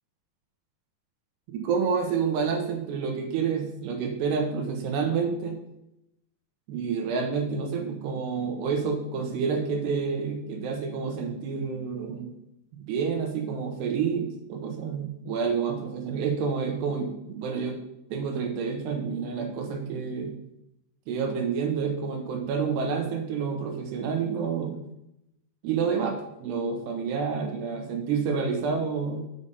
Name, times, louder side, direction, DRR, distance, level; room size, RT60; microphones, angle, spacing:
voice 1, 1.5-5.6 6.7-12.4 12.9-17.8 18.1-20.4 21.1-24.8 25.6-29.2, right 5 dB, 75° right, 3 dB, 3.3 m, -29 dB
7.0 x 5.5 x 6.9 m, 0.82 s
omnidirectional pair, 5.0 m